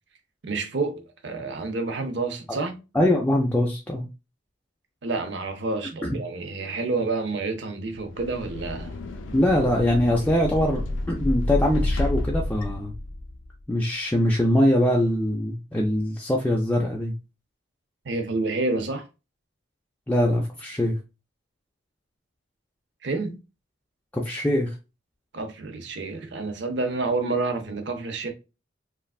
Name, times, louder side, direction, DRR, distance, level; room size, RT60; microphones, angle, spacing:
voice 1, 0.4-2.8 5.0-9.0 18.0-19.1 23.0-23.4 25.3-28.3, right 3 dB, 65° right, 0.6 m, -29 dB
voice 2, 2.9-4.1 6.0-6.2 9.3-10.8 11.1-12.9 13.7-17.1 20.1-21.0 24.1-24.8, left 1 dB, 10° left, 0.4 m, -22 dB
sound 1, 7.9-13.5, left 1 dB, 85° left, 0.5 m, -29 dB
3.2 x 2.4 x 2.3 m
head